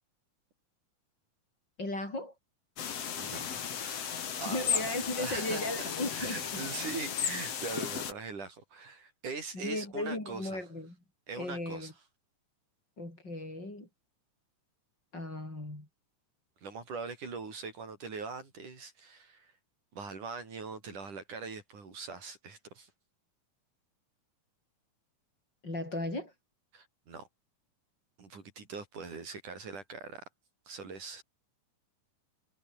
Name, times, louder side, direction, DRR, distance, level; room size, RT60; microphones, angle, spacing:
voice 1, 1.8-2.3 4.5-6.6 9.5-11.0 11.4-11.9 13.0-13.9 15.1-15.9 25.6-26.3, left 2 dB, 30° left, 8.7 m, -36 dB
sound 1, 2.8-8.1, left 8 dB, 50° left, 3.0 m, -35 dB
voice 2, 3.2-4.1 4.4-4.8 5.2-5.6 6.1-10.6 11.3-11.9 16.6-19.5 19.9-22.9 26.7-27.3 28.2-30.2 30.7-31.2, right 4 dB, 70° right, 6.7 m, -42 dB
omnidirectional pair, 3.7 m